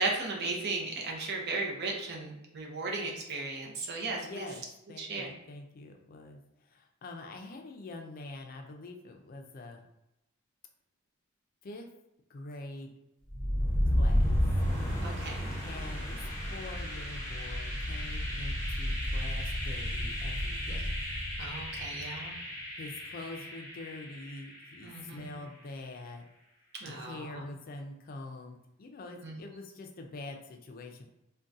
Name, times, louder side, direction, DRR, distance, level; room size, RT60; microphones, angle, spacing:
voice 1, 0.0-4.5 5.0-5.3 15.0-15.5 20.7-20.8 21.4-22.3 24.8-25.4 26.8-27.4 29.2-29.4, right 3 dB, 55° right, -1 dB, 0.7 m, -36 dB
voice 2, 4.2-4.6 4.9-6.4 6.7-9.8 11.6-11.9 12.3-12.9 13.9-14.4 15.6-20.9 22.8-26.3 26.9-31.1, left 2 dB, 45° left, 3 dB, 0.4 m, -45 dB
sound 1, 13.3-25.1, equal, 15° left, 0.9 m, -32 dB
3.6 x 2.2 x 2.6 m, 0.88 s
head